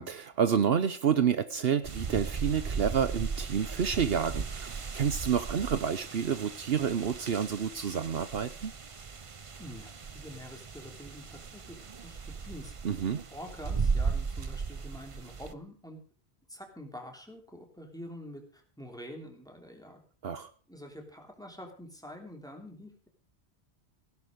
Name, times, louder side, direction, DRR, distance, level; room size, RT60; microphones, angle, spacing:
voice 1, 0.0-8.7 12.8-13.2 20.2-20.5, right 7 dB, 65° right, 12 dB, 1.0 m, -29 dB
sound 1, 1.8-15.5, right 5 dB, 35° right, 0.7 m, -36 dB
voice 2, 9.6-11.8 12.0-12.7 13.3-16.0 16.5-20.0 20.7-23.1, equal, 5° left, 3 dB, 3.1 m, -46 dB
16.5 x 11.0 x 5.2 m, 0.41 s
omnidirectional pair, 1.1 m